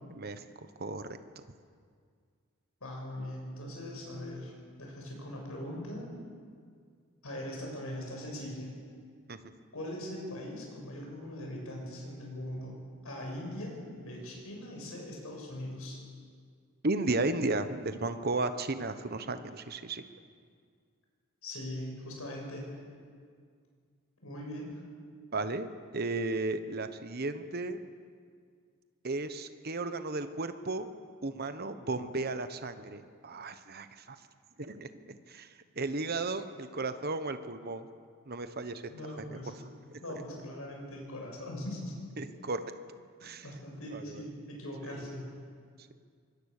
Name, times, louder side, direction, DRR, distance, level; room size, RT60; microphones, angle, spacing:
voice 1, 0.1-1.1 9.3-9.4 16.8-20.0 25.3-27.8 29.0-30.9 31.2-34.2 34.6-37.9 38.3-38.9 39.2-39.4 39.9-40.0 42.2-42.6 43.2-43.5 43.9-44.2 44.8-45.1, right 2 dB, 45° right, 10 dB, 1.1 m, -34 dB
voice 2, 2.8-4.5 4.8-6.1 7.2-8.7 9.7-12.7 13.0-16.0 21.4-22.7 24.2-24.7 38.9-39.5 40.0-41.9 43.2-45.3, left 1 dB, 90° left, -1 dB, 7.0 m, -41 dB
24.5 x 21.5 x 6.7 m, 2.1 s
head